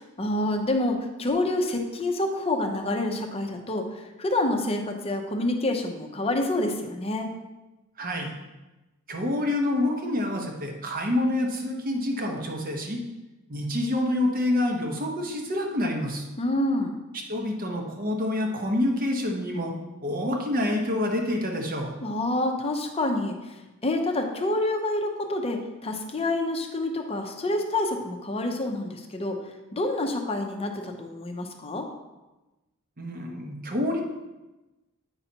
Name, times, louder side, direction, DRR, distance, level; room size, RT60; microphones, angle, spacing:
voice 1, 0.0-7.3 16.4-17.0 22.0-29.4 29.7-31.9, left 1 dB, 25° left, 4 dB, 0.7 m, -28 dB
voice 2, 8.0-8.4 9.1-13.0 13.5-16.3 17.1-19.7 20.0-21.9 33.0-34.0, left 1 dB, 40° right, 1 dB, 0.9 m, -27 dB
8.8 x 5.6 x 2.8 m, 1.1 s
head